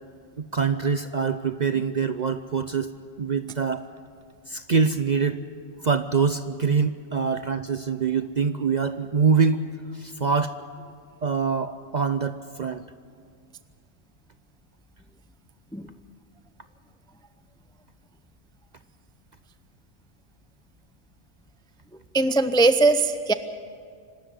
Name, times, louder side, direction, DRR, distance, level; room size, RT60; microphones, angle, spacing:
voice 1, 0.4-2.9 3.2-3.8 4.5-5.4 5.8-9.6 10.0-10.5 11.2-12.8, right 5 dB, 45° right, 10 dB, 0.6 m, -24 dB
voice 2, 22.1-23.3, right 3 dB, 5° left, 11 dB, 0.4 m, -20 dB
25.5 x 12.5 x 9.7 m, 2.1 s
omnidirectional pair, 1.3 m